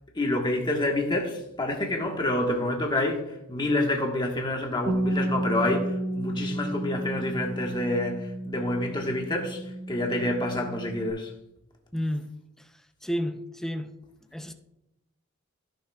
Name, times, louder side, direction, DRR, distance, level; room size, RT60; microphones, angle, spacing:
voice 1, 0.1-9.6 9.9-11.3, left 1 dB, 20° left, 1.3 m, -28 dB
Bass guitar, 4.9-11.1, right 1 dB, 55° right, 1.3 m, -32 dB
voice 2, 11.9-12.3 12.6-12.7 13.0-13.9 14.3-14.5, equal, ahead, 0.5 m, -31 dB
15.0 x 6.1 x 2.3 m
head